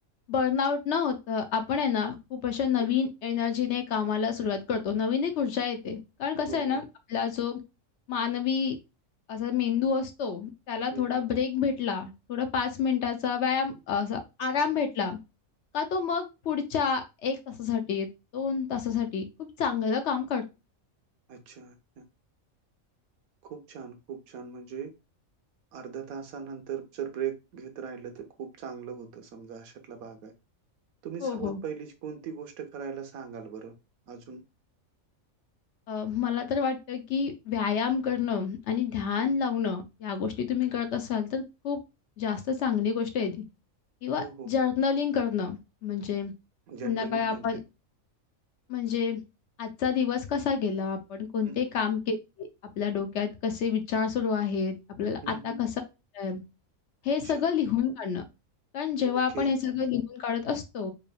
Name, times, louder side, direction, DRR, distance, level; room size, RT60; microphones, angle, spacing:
voice 1, 0.3-6.8 7.1-7.6 8.1-8.8 9.3-15.2 15.7-18.1 18.3-20.4 31.2-31.6 35.9-41.8 42.2-43.4 44.0-46.3 46.8-47.6 48.7-49.2 49.6-52.5 52.8-55.8 56.1-56.4 57.0-58.2 58.7-60.9, left 6 dB, 65° left, 7 dB, 0.8 m, -29 dB
voice 2, 6.5-6.8 10.9-11.2 14.5-14.6 21.3-22.0 23.5-24.9 25.7-30.3 31.0-33.7 34.1-34.4 39.2-39.3 44.2-44.5 46.7-47.6 51.4-51.7 55.2-55.6 57.2-57.4 59.0-59.5, right 7 dB, 90° right, 7 dB, 1.3 m, -39 dB
4.7 x 3.3 x 2.2 m, 0.26 s
omnidirectional pair, 1.5 m